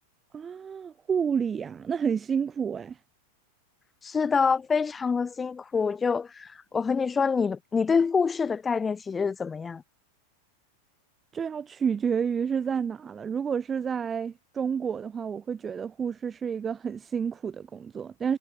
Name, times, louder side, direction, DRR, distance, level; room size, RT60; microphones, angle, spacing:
voice 1, 0.3-3.0 11.3-18.4, right 7 dB, 20° right, 0.3 m, -30 dB
voice 2, 4.0-9.8, left 5 dB, 15° left, 0.6 m, -26 dB
figure-of-eight pair, 90°, 0 cm